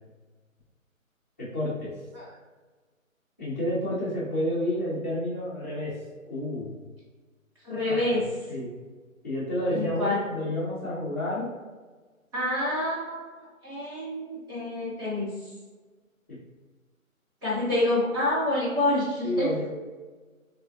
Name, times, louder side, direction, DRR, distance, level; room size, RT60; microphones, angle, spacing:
voice 1, 1.4-1.9 3.4-5.9 6.3-6.8 7.7-8.0 8.5-8.7 9.2-11.5 16.3-16.4 19.2-19.7, left 1 dB, 10° left, -12 dB, 0.5 m, -30 dB
voice 2, 7.6-8.2 9.7-10.2 12.3-15.3 17.4-19.5, left 1 dB, 15° right, -8 dB, 0.9 m, -27 dB
3.6 x 3.1 x 2.6 m, 1.3 s
figure-of-eight pair, 150°, 42 cm